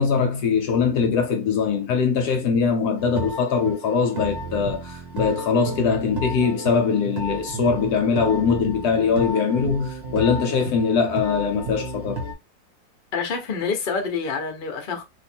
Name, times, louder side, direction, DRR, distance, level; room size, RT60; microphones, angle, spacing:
voice 1, 0.0-12.2, left 5 dB, 70° left, 1.1 m, -22 dB
sound 1, 3.0-12.3, right 1 dB, 45° right, 0.9 m, -32 dB
voice 2, 13.1-15.0, left 5 dB, 45° left, 0.7 m, -27 dB
2.8 x 2.4 x 4.3 m
omnidirectional pair, 2.0 m